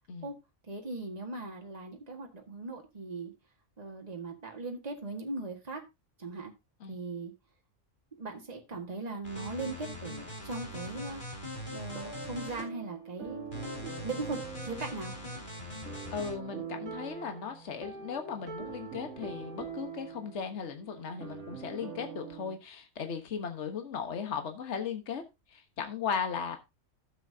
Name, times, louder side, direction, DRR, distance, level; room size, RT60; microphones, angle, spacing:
voice 1, 0.7-3.3 3.8-5.8 6.2-6.5 6.9-7.3 8.2-11.2 11.7-13.5 14.0-14.4 14.6-15.1, right 3 dB, 30° right, 2 dB, 1.9 m, -39 dB
sound 1, 9.2-12.6 13.5-16.3, left 1 dB, 35° left, 3.4 m, -41 dB
sound 2, 11.9-22.6, right 6 dB, 55° right, 2.0 m, -44 dB
voice 2, 16.1-25.2 25.5-26.6, left 6 dB, 55° left, 6 dB, 1.5 m, -37 dB
12.0 x 7.7 x 2.8 m, 0.23 s
omnidirectional pair, 1.5 m